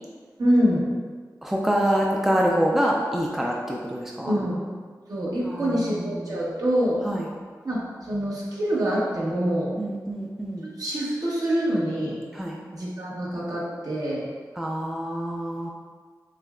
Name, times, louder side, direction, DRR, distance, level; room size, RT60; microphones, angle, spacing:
voice 1, 0.4-0.8 4.2-4.6 5.1-7.0 7.6-9.7 10.6-12.2 12.7-14.3, equal, 60° right, -7 dB, 1.3 m, -25 dB
voice 2, 1.4-4.3 5.5-6.5 7.0-7.3 9.8-10.7 12.3-12.6 14.6-15.7, equal, 5° right, -2 dB, 0.5 m, -26 dB
6.3 x 2.2 x 2.4 m, 1.5 s
cardioid pair, 55°, 7 cm